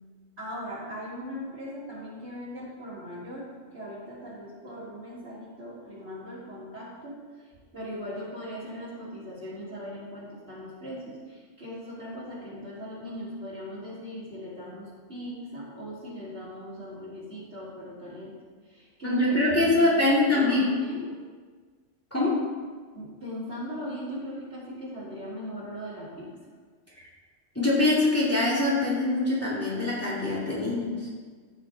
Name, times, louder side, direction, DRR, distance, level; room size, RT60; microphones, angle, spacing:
voice 1, 0.4-7.2 7.7-18.3 18.6-21.1 22.9-26.3, equal, 55° right, -8 dB, 3.4 m, -38 dB
voice 2, 19.0-20.6 22.1-22.3 27.6-31.1, left 2 dB, 10° left, -8 dB, 2.3 m, -24 dB
14.5 x 5.8 x 3.9 m, 1.5 s
omnidirectional pair, 1.3 m